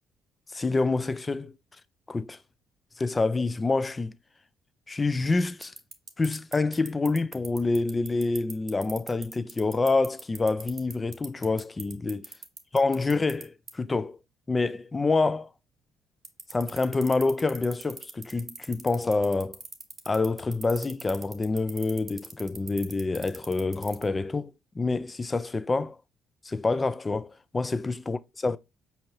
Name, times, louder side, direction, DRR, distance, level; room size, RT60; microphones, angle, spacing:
voice 1, 0.5-1.5 2.1-2.4 3.0-4.1 4.9-5.7 6.2-12.3 12.7-14.2 14.5-15.5 16.5-19.6 20.1-26.0 26.5-28.6, left 3 dB, 25° left, 0.4 m, -27 dB
sound 1, 5.6-13.4 13.7-13.8 16.2-24.0, right 5 dB, 45° right, 0.9 m, -39 dB
5.1 x 2.8 x 2.8 m
hypercardioid pair, 55°, 0 cm